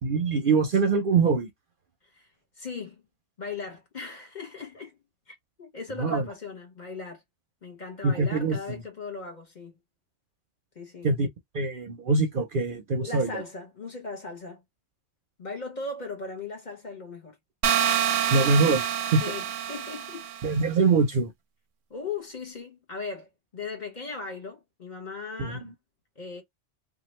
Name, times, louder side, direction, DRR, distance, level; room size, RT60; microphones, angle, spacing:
voice 1, 0.0-1.5 6.0-6.3 8.0-8.8 11.0-11.3 11.5-13.4 18.3-19.2 20.4-21.3 25.4-25.7, right 4 dB, 55° right, 0.7 m, -24 dB
voice 2, 2.6-3.0 3.4-5.0 5.3-7.2 7.6-9.8 10.7-11.1 13.0-14.6 15.4-17.4 19.2-20.3 21.9-25.7 26.2-26.4, left 4 dB, 40° left, 1.0 m, -38 dB
sound 1, 17.6-20.5, right 9 dB, 90° right, 0.9 m, -27 dB
2.9 x 2.4 x 3.0 m
omnidirectional pair, 1.2 m